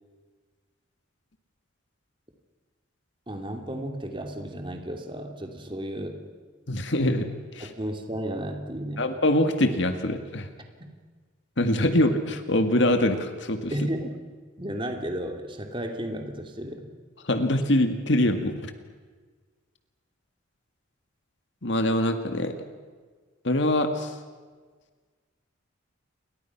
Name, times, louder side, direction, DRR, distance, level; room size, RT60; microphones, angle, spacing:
voice 1, 3.3-6.2 7.6-9.1 10.8-10.9 11.9-12.0 13.7-14.1 14.6-16.9, right 1 dB, 25° right, 4 dB, 2.8 m, -33 dB
voice 2, 6.7-7.3 7.6-7.7 9.0-10.5 11.6-13.7 17.3-18.7 21.6-22.5 23.4-24.1, left 1 dB, 60° left, 7 dB, 2.0 m, -24 dB
30.0 x 23.5 x 6.0 m, 1.5 s
head